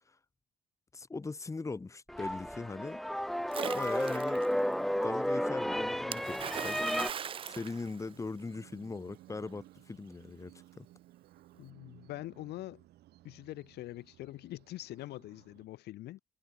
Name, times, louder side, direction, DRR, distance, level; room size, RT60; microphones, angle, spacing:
voice 1, 0.9-3.0 3.7-6.9 7.4-10.9, left 3 dB, 20° left, 2.0 m, -40 dB
sound 1, 2.1-7.1, equal, ahead, 0.9 m, -33 dB
Splash splatter, 3.5-4.5 6.1-8.6, right 8 dB, 30° right, 0.4 m, -40 dB
sound 2, 6.4-15.7, right 15 dB, 75° right, 2.5 m, -59 dB
voice 2, 11.6-12.8 13.2-16.2, left 16 dB, 75° left, 2.0 m, -44 dB
cardioid pair, 110°, 17 cm